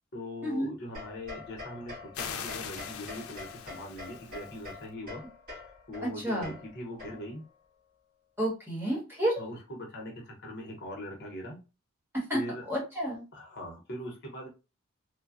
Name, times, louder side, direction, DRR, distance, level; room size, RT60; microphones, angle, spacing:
voice 1, 0.1-5.2 5.6-7.4 9.4-11.6 12.3-12.6 13.3-14.5, left 1 dB, 50° left, 0 dB, 0.8 m, -41 dB
sound 1, 0.9-7.5, left 3 dB, 45° right, 1.7 m, -46 dB
sound 2, 2.1-4.7, left 7 dB, 85° left, 0.4 m, -41 dB
voice 2, 8.4-9.4 12.3-12.4 12.7-13.2, equal, 10° right, -4 dB, 1.3 m, -30 dB
3.2 x 2.2 x 2.5 m, 0.29 s
head